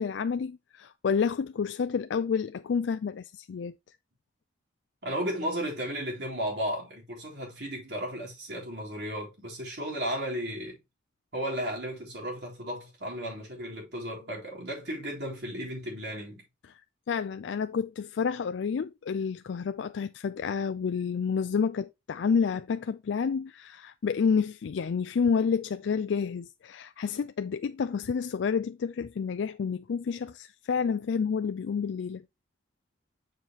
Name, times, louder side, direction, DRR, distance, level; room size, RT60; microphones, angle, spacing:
voice 1, 0.0-3.7 16.7-16.8 17.1-32.2, left 6 dB, 80° left, 0.4 m, -29 dB
voice 2, 5.0-10.8 11.3-16.4, equal, 70° right, 3.8 m, -34 dB
7.4 x 6.4 x 2.9 m
head